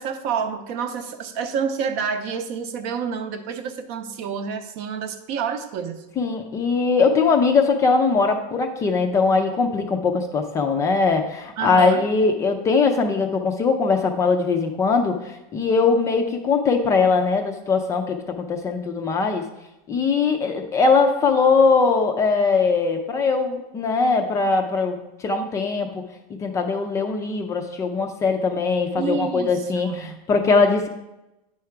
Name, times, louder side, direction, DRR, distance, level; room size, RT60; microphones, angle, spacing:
voice 1, 0.0-6.0 11.6-12.0 29.0-30.2, right 6 dB, 45° right, 9 dB, 0.7 m, -28 dB
voice 2, 6.2-19.4 19.9-26.0 26.3-30.9, left 4 dB, 15° left, 4 dB, 0.4 m, -21 dB
9.5 x 4.8 x 4.5 m, 0.94 s
supercardioid pair, 170°, 18 cm